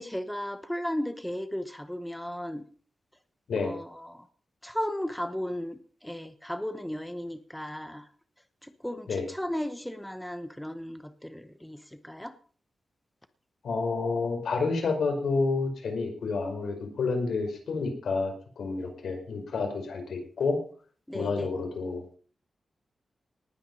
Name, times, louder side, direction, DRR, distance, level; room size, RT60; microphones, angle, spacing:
voice 1, 0.0-2.6 3.6-4.3 4.6-8.1 8.6-12.4 21.1-21.5, equal, 5° left, 11 dB, 0.9 m, -35 dB
voice 2, 13.6-20.6 21.1-22.2, left 4 dB, 85° left, 4 dB, 5.1 m, -29 dB
19.0 x 9.2 x 5.5 m, 0.44 s
wide cardioid pair, 170°, 0 cm